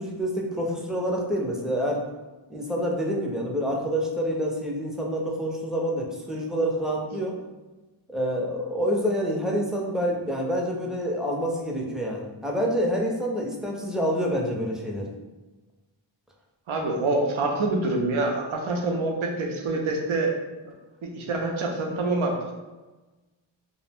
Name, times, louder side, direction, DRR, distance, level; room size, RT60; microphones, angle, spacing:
voice 1, 0.0-2.1 2.5-7.3 8.1-15.1, equal, ahead, -1 dB, 0.4 m, -27 dB
voice 2, 16.7-20.3 20.6-20.7 21.0-22.5, right 2 dB, 85° right, 1 dB, 0.6 m, -26 dB
2.5 x 2.0 x 3.3 m, 1.2 s
wide cardioid pair, 45°, 47 cm